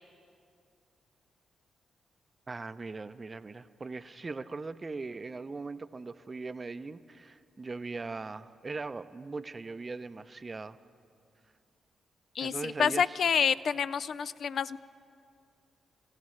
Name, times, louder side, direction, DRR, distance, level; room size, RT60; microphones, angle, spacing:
voice 1, 2.5-10.8 12.4-13.2, right 3 dB, 40° right, 12 dB, 0.6 m, -40 dB
voice 2, 12.4-14.8, left 7 dB, 65° left, 16 dB, 0.3 m, -28 dB
28.0 x 15.5 x 3.2 m, 2.4 s
supercardioid pair, 45°, 0 cm